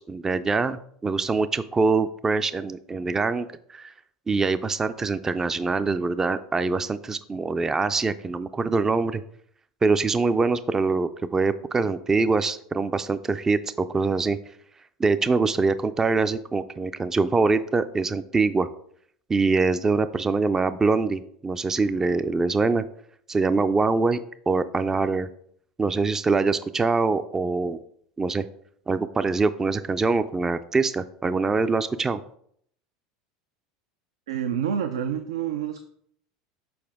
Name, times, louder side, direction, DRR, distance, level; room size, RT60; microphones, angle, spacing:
voice 1, 0.0-3.9 4.3-9.2 9.8-14.4 15.0-18.7 19.3-22.8 23.3-25.3 25.8-27.8 28.2-28.4 28.9-32.2, right 4 dB, 20° right, 13 dB, 0.4 m, -24 dB
voice 2, 34.3-35.8, right 8 dB, 80° right, 8 dB, 0.4 m, -28 dB
7.0 x 4.4 x 3.6 m, 0.66 s
hypercardioid pair, 85°, 3 cm